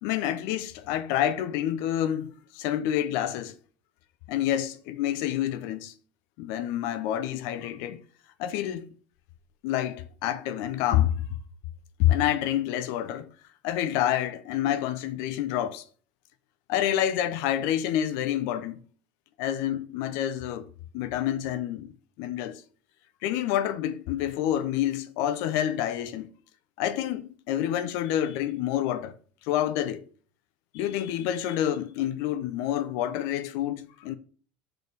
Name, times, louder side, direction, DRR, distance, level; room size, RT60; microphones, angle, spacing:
voice 1, 0.0-3.6 4.3-5.9 6.4-8.0 8.4-8.9 9.6-11.2 12.0-13.3 13.6-15.8 16.7-18.8 19.4-20.7 20.9-22.6 23.2-26.3 26.8-29.1 29.4-30.0 30.7-34.2, left 11 dB, 65° left, 0.6 m, -28 dB
6.0 x 4.8 x 4.7 m
hypercardioid pair, 75°, 6 cm